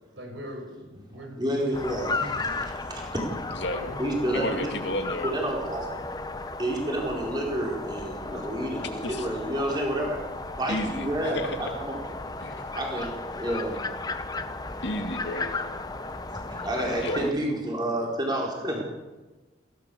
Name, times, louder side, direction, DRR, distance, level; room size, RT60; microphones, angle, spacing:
voice 1, 0.2-2.5 3.6-4.9 16.7-17.5, equal, 70° right, 3 dB, 5.7 m, -40 dB
voice 2, 1.4-3.3 4.0-4.6 5.2-5.9 6.6-10.2 10.6-12.0 12.7-13.8 14.3-14.4 16.3-18.8, right 1 dB, 20° right, -1 dB, 4.5 m, -30 dB
sound 1, 1.7-17.3, left 3 dB, 20° left, 1.0 m, -35 dB
voice 3, 3.5-3.9 4.3-5.3 9.0-9.3 10.7-11.6 12.4-12.6 14.8-15.5 17.0-17.2, left 1 dB, 65° left, 5 dB, 2.2 m, -32 dB
22.0 x 17.5 x 7.0 m, 1.2 s
head